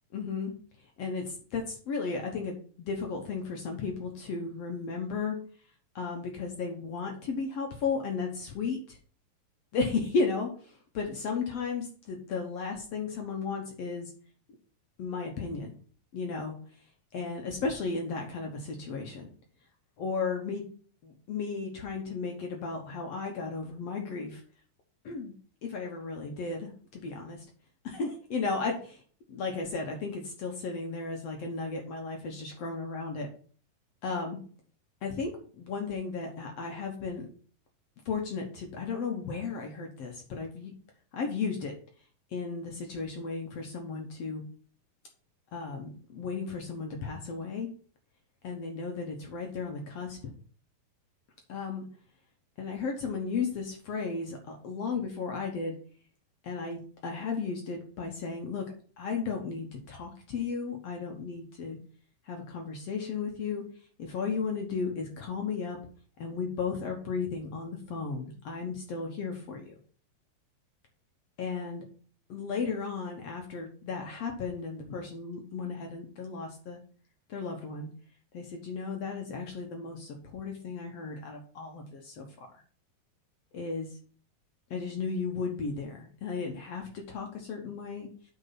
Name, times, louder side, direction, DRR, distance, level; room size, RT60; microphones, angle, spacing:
voice 1, 0.1-0.5 1.0-5.4 6.0-9.0 9.7-14.1 15.0-15.7 16.1-16.6 17.1-19.3 20.0-20.6 21.0-24.4 25.0-25.3 25.6-27.4 27.8-29.0 29.3-33.3 34.0-34.4 35.0-37.3 38.1-40.7 41.1-41.7 42.3-44.4 45.5-47.7 48.4-50.3 51.5-51.9 52.6-55.7 56.4-58.6 59.0-61.8 62.3-63.6 64.0-65.8 66.2-69.8 71.4-71.8 72.3-76.8 77.3-77.9 78.3-82.2 83.5-83.9 84.7-88.1, left 4 dB, 60° left, 2 dB, 1.9 m, -34 dB
8.3 x 4.4 x 5.8 m, 0.43 s
omnidirectional pair, 4.0 m